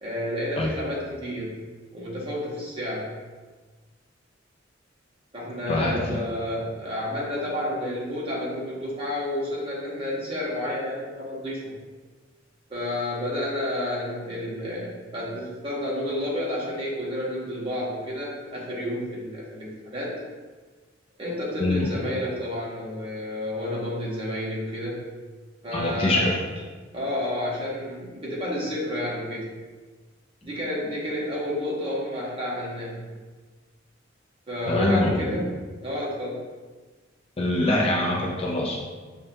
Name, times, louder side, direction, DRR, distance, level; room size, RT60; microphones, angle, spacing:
voice 1, 0.0-1.6 1.9-3.1 5.3-11.8 12.7-20.1 21.2-25.0 25.6-26.3 26.9-29.5 30.4-33.0 34.5-35.5 35.8-36.4, left 1 dB, 30° right, -5 dB, 1.0 m, -30 dB
voice 2, 5.7-6.2 21.6-21.9 25.7-26.4 34.7-35.5 37.4-38.8, left 1 dB, 30° left, -1 dB, 0.3 m, -24 dB
5.6 x 2.2 x 2.6 m, 1.4 s
head